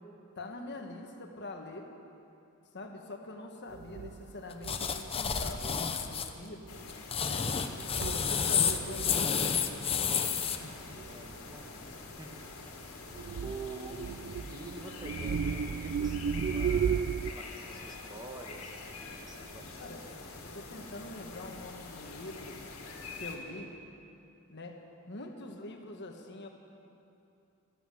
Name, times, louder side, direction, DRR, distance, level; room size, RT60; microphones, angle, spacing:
voice 1, 0.3-1.9 2.7-6.6 7.2-7.5 7.9-9.9 10.6-11.0 19.8-20.0 20.4-22.6 23.2-23.7 24.5-24.8 25.1-26.5, left 2 dB, 55° left, 3 dB, 1.5 m, -44 dB
sound 1, 3.7-6.1 6.6-6.8 7.3-7.4 7.7-9.3 10.0-10.1 11.0-11.1 13.1-17.3, right 7 dB, 50° right, 0.3 m, -35 dB
sound 2, 4.6-6.3 6.9-10.6, left 7 dB, 25° left, 0.7 m, -30 dB
sound 3, 6.7-23.4, left 3 dB, 80° left, 2.1 m, -45 dB
voice 2, 11.1-11.9 12.2-12.5 13.4-14.0 14.5-17.0 17.3-20.2, right 3 dB, 20° right, 2 dB, 1.2 m, -47 dB
13.5 x 13.0 x 7.6 m, 2.7 s
head